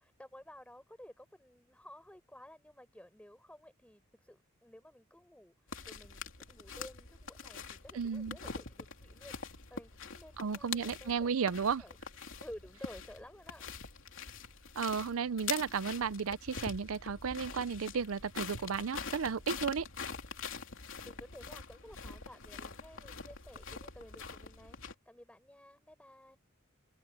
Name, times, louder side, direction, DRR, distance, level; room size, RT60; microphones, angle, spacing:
voice 1, 0.0-6.2 6.5-11.3 11.8-12.0 12.4-13.6 21.1-26.4, left 1 dB, 5° left, 5.3 m, -54 dB
sound 1, 5.7-24.9, left 5 dB, 65° left, 3.3 m, -45 dB
voice 2, 7.9-8.4 10.4-11.8 14.8-19.9, right 6 dB, 85° right, 0.6 m, -34 dB
open air
head